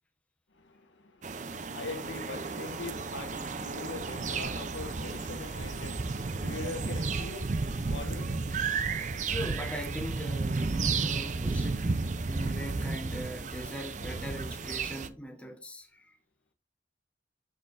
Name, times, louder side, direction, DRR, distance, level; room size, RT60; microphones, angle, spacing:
voice 1, 0.5-9.3, left 3 dB, 80° left, 1.3 m, -43 dB
sound 1, 1.2-15.1, right 4 dB, 40° right, 0.5 m, -33 dB
voice 2, 9.3-11.9 12.3-16.2, equal, 5° left, 1.0 m, -40 dB
7.3 x 6.5 x 2.6 m
head